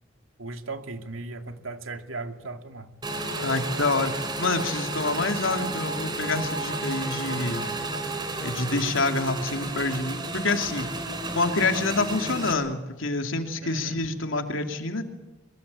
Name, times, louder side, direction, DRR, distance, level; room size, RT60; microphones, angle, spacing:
voice 1, 0.4-2.9 13.6-14.0, right 3 dB, 85° right, 6 dB, 2.5 m, -37 dB
Motorcycle / Engine, 3.0-12.5, right 2 dB, 20° right, 3.7 m, -32 dB
voice 2, 3.4-7.6 8.4-10.9 11.3-15.0, left 3 dB, 75° left, 5 dB, 2.9 m, -27 dB
24.5 x 23.0 x 8.5 m, 1.0 s
head